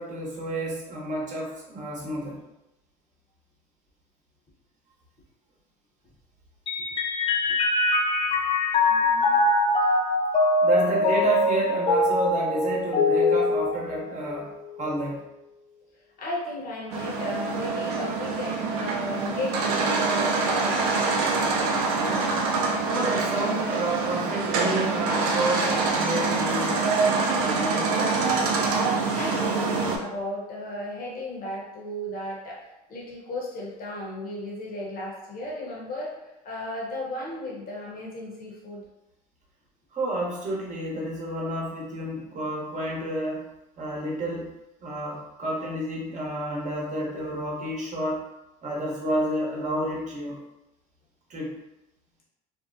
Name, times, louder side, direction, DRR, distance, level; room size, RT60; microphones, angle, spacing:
voice 1, 0.0-2.4 10.6-14.5 14.8-15.2 22.0-22.3 22.9-26.8 27.4-28.1 39.9-43.4 43.8-44.5 44.8-48.2 48.6-50.4 51.3-51.5, right 1 dB, 40° right, -3 dB, 0.9 m, -30 dB
Mallet percussion, 6.7-14.4, left 2 dB, 30° left, 0.4 m, -23 dB
voice 2, 8.9-9.4 16.2-20.8 29.1-38.8, left 1 dB, 50° left, -4 dB, 1.0 m, -35 dB
sound 1, 16.9-30.0, right 4 dB, 80° right, 0.5 m, -25 dB
2.6 x 2.0 x 2.6 m, 0.92 s
supercardioid pair, 85°, 19 cm